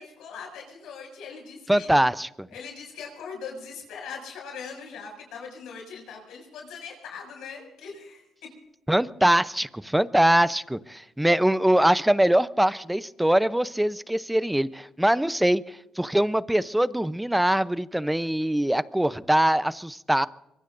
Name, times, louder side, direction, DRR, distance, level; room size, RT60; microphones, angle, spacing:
voice 1, 0.0-1.9 2.5-8.2, left 5 dB, 85° left, 6.7 m, -40 dB
voice 2, 1.7-2.5 8.9-20.3, right 1 dB, 5° right, 0.6 m, -23 dB
23.5 x 23.0 x 2.6 m
cardioid pair, 90°, 0 cm